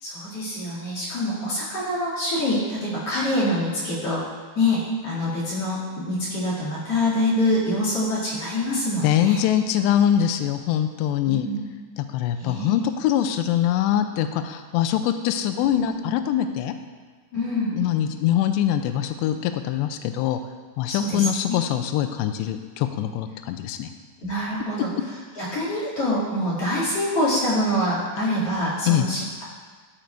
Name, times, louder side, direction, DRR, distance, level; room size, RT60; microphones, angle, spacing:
voice 1, 0.0-4.2 4.5-9.4 11.2-11.6 12.4-12.7 15.7-15.9 17.3-17.7 20.9-21.6 24.2-24.9 25.4-29.4, left 1 dB, 45° left, -7 dB, 2.2 m, -25 dB
voice 2, 9.0-11.5 12.0-16.8 17.7-20.4 20.8-23.9 28.9-29.1, left 10 dB, 90° left, 8 dB, 2.4 m, -23 dB
12.5 x 5.3 x 4.5 m, 1.5 s
omnidirectional pair, 5.5 m